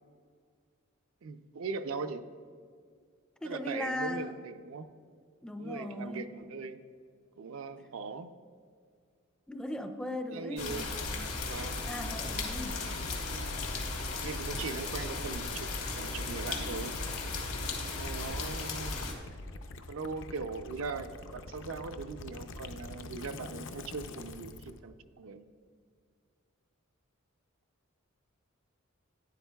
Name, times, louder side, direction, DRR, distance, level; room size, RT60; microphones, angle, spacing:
voice 1, 1.2-2.2 3.4-4.9 5.6-6.8 7.4-8.3 10.3-11.0 11.4-11.8 14.2-15.7 15.9-17.0 17.8-19.0 19.9-25.5, right 4 dB, 70° right, 9 dB, 0.4 m, -40 dB
voice 2, 3.4-4.3 5.4-6.3 9.5-11.5 11.8-12.8, left 1 dB, 5° left, 7 dB, 0.3 m, -38 dB
sound 1, 10.6-19.1, left 3 dB, 85° left, 1.3 m, -36 dB
Gurgling / Liquid, 12.3-24.8, left 2 dB, 60° left, 0.5 m, -46 dB
11.5 x 10.0 x 2.3 m, 2.1 s
head